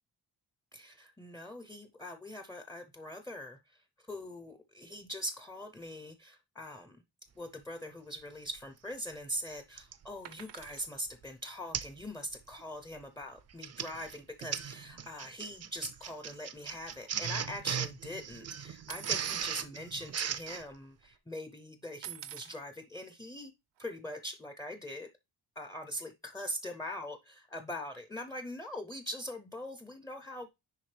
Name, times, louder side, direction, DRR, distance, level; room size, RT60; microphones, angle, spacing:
voice 1, 0.7-7.0 7.4-23.5 23.8-25.1 25.6-30.5, equal, 10° left, 0.5 m, -42 dB
Printer, 8.6-8.7 9.8-10.1 10.6-10.9 11.1-11.2 11.7-12.0 12.3-12.6 13.4-20.6, right 8 dB, 40° right, 0.4 m, -37 dB
sound 1, 10.2-10.9 13.1-13.2 13.4-13.6 13.8-14.0 14.8-14.9 15.3-17.5 18.9-19.5 20.3-20.4 20.6-21.1 22.0-22.6 23.8-23.9, right 11 dB, 90° right, 0.7 m, -48 dB
10.5 x 3.5 x 3.3 m
wide cardioid pair, 150°, 42 cm